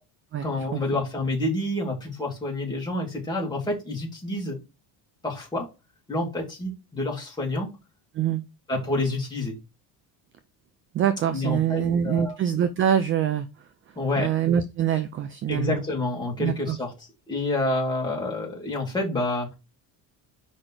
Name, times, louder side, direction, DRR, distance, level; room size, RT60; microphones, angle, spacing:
voice 1, 0.4-4.6 5.2-5.7 6.1-7.7 8.7-9.5 11.3-12.4 14.0-14.3 15.5-16.9 17.3-19.5, left 2 dB, 10° left, 2.4 m, -28 dB
voice 2, 10.9-13.5 14.2-15.8 16.4-16.8, right 9 dB, 35° right, 0.4 m, -24 dB
5.1 x 4.2 x 4.4 m
cardioid pair, 170°, 39 cm